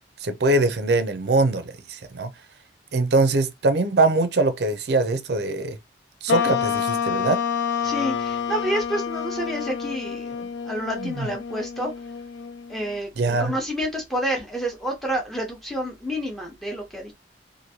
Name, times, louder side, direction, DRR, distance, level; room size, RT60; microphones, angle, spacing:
voice 1, 0.2-2.3 2.9-5.8 6.2-7.4 10.8-11.3 13.2-13.5, right 2 dB, 60° right, 0.5 m, -22 dB
sound 1, 6.3-13.0, left 7 dB, 75° left, 0.3 m, -28 dB
voice 2, 7.8-11.9 12.7-17.1, equal, ahead, 0.9 m, -29 dB
3.0 x 2.6 x 2.7 m
head